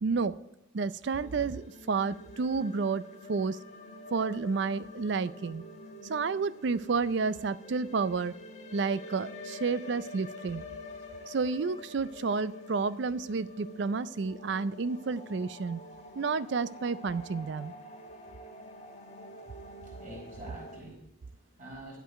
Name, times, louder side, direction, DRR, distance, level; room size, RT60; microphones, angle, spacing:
voice 1, 0.0-0.3 0.7-3.0 3.3-3.6 4.1-5.6 6.0-8.3 8.7-10.6 11.3-15.8 16.2-17.7, right 4 dB, 65° right, 16 dB, 0.4 m, -30 dB
sound 1, 1.1-20.8, left 2 dB, 35° left, 1.6 m, -47 dB
voice 2, 19.2-22.0, right 1 dB, 45° right, -4 dB, 4.4 m, -48 dB
11.0 x 8.1 x 4.6 m, 0.90 s
head